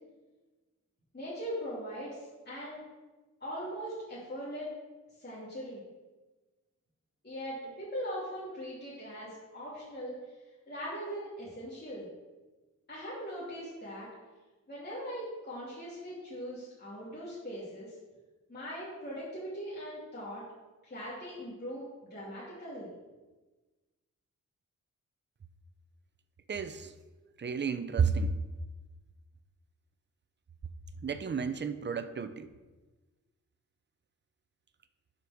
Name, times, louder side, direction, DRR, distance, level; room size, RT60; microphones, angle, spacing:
voice 1, 1.1-2.8 3.4-4.7 5.2-5.8 7.2-10.2 10.7-12.1 12.9-14.1 14.7-18.0 18.5-20.4 20.8-22.9, equal, 35° left, -9 dB, 2.9 m, -40 dB
voice 2, 26.5-26.9 27.4-28.3 31.0-32.5, right 5 dB, 35° right, 10 dB, 0.6 m, -31 dB
9.6 x 5.3 x 6.4 m, 1.2 s
wide cardioid pair, 115°, 31 cm